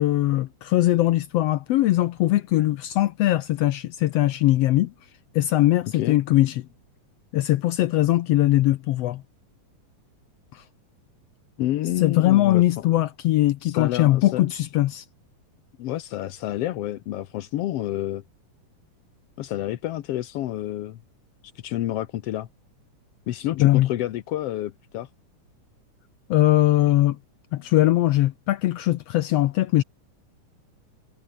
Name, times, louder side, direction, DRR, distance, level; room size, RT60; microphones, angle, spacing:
voice 1, 0.0-4.9 5.3-6.6 7.3-9.2 10.5-10.6 12.0-15.0 23.6-23.9 26.3-27.2 27.5-29.8, left 15 dB, 90° left, 1.4 m, -21 dB
voice 2, 11.6-12.9 13.6-14.4 15.8-18.2 19.4-21.0 21.6-22.5 23.3-25.1, left 14 dB, 70° left, 1.5 m, -29 dB
omnidirectional pair, 3.7 m